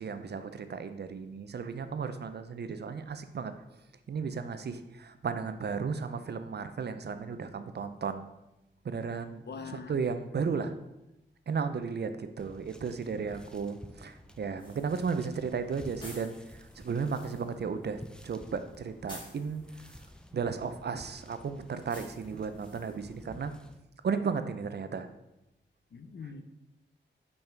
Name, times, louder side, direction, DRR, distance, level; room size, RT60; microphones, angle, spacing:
voice 1, 0.0-3.5 4.1-8.3 8.8-10.7 11.5-19.9 20.3-23.5 24.0-25.1 26.2-26.3, right 5 dB, 60° right, 10 dB, 0.5 m, -34 dB
voice 2, 9.5-10.0 25.9-26.4, left 5 dB, 60° left, 9 dB, 0.6 m, -42 dB
sound 1, 12.4-23.8, equal, 5° left, 0.5 m, -52 dB
sound 2, 14.6-23.2, left 1 dB, 25° left, 2.1 m, -54 dB
5.5 x 5.5 x 4.5 m, 0.92 s
wide cardioid pair, 110°, 20 cm